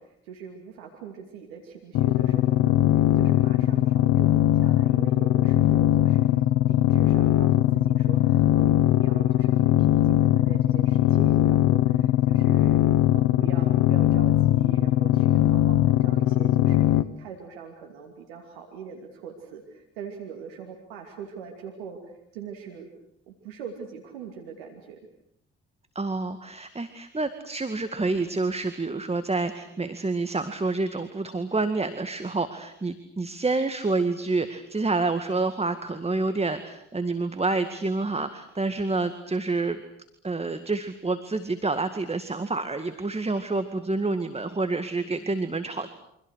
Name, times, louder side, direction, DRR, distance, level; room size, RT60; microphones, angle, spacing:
voice 1, 0.0-6.3 6.6-12.8 13.1-16.9 17.2-22.9 23.3-25.0, right 6 dB, 85° right, 2 dB, 2.7 m, -42 dB
sound 1, 2.0-17.0, left 14 dB, 70° left, 1.1 m, -20 dB
voice 2, 26.0-39.8 40.2-45.9, right 3 dB, 20° right, 9 dB, 2.1 m, -28 dB
29.0 x 25.5 x 6.5 m, 0.75 s
hypercardioid pair, 50°, 30 cm